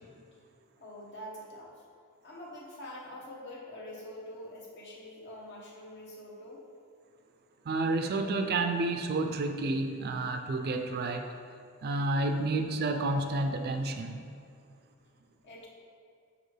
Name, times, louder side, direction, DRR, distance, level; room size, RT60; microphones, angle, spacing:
voice 1, 0.8-1.7 2.2-6.6 15.4-15.7, left 1 dB, 55° left, -3 dB, 1.2 m, -45 dB
voice 2, 7.7-11.3 11.8-14.2, right 2 dB, 45° right, 6 dB, 0.4 m, -30 dB
6.5 x 5.3 x 3.3 m, 2.2 s
head